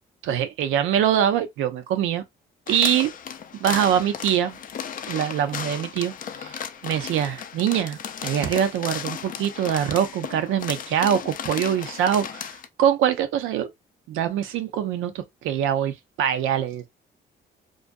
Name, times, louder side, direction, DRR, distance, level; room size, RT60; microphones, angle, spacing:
voice 1, 0.2-2.2 2.7-3.1 3.6-4.6 5.1-6.1 6.4-13.7 14.1-16.9, right 9 dB, 90° right, 0.5 m, -24 dB
sound 1, 2.7-12.7, left 8 dB, 45° left, 0.4 m, -35 dB
2.4 x 2.2 x 2.4 m
cardioid pair, 90°, 20 cm